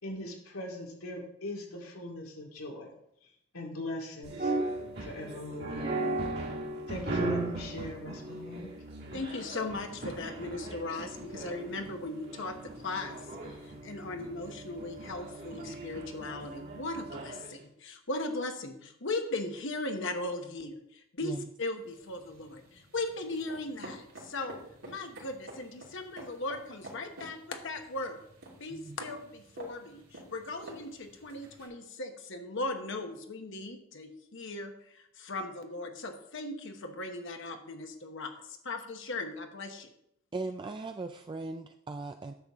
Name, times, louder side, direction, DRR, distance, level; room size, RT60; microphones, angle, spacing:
voice 1, 0.0-2.9 3.5-4.5 5.0-5.9 6.9-8.7, left 1 dB, 85° left, 0 dB, 2.4 m, -40 dB
sound 1, 4.2-17.5, right 2 dB, 50° right, 1.9 m, -37 dB
voice 2, 9.1-24.6 24.9-28.2 28.6-39.9, left 2 dB, 60° left, 5 dB, 1.1 m, -38 dB
sound 2, 21.8-31.7, right 1 dB, 80° right, 2.7 m, -50 dB
voice 3, 40.3-42.3, right 3 dB, 20° right, 6 dB, 0.3 m, -38 dB
10.0 x 7.2 x 3.6 m, 0.76 s
head